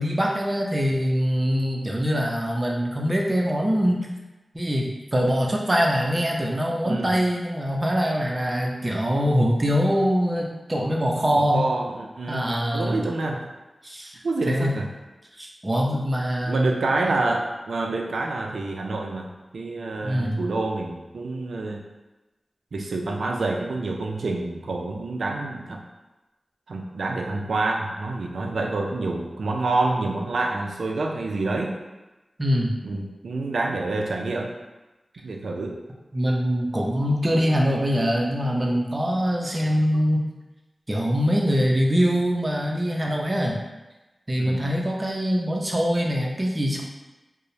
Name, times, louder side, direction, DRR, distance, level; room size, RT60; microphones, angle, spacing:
voice 1, 0.0-4.1 4.5-11.6 12.3-13.0 13.8-14.2 14.5-14.7 15.4-16.7 20.0-20.4 32.4-32.7 36.1-40.3 40.9-43.6 44.3-46.8, equal, 30° right, -1 dB, 0.5 m, -23 dB
voice 2, 11.3-13.5 14.2-14.9 16.5-21.8 22.7-25.8 26.7-31.8 32.8-34.5 35.2-35.8 44.4-44.7, right 2 dB, 85° right, 1 dB, 0.3 m, -27 dB
2.9 x 2.0 x 2.6 m, 1.1 s
cardioid pair, 45°, 0 cm